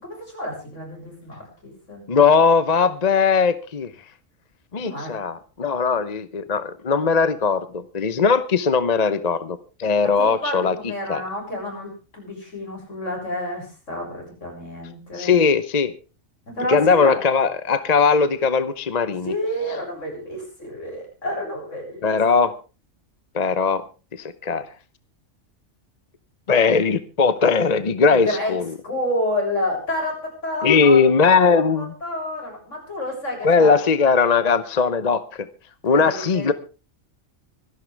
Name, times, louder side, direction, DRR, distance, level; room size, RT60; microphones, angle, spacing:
voice 1, 0.0-2.0 4.8-5.1 10.0-15.4 16.5-17.2 19.2-22.2 28.1-28.6 28.8-31.0 31.4-33.8 35.9-36.5, left 1 dB, 65° left, 1 dB, 7.5 m, -29 dB
voice 2, 2.1-3.9 4.7-10.7 11.1-11.2 15.2-15.9 16.7-19.3 22.0-22.5 23.3-23.8 24.4-24.6 26.5-28.6 30.6-31.9 33.4-35.5 35.8-36.5, left 5 dB, 35° left, 13 dB, 0.8 m, -19 dB
25.5 x 11.5 x 3.4 m, 0.33 s
omnidirectional pair, 1.4 m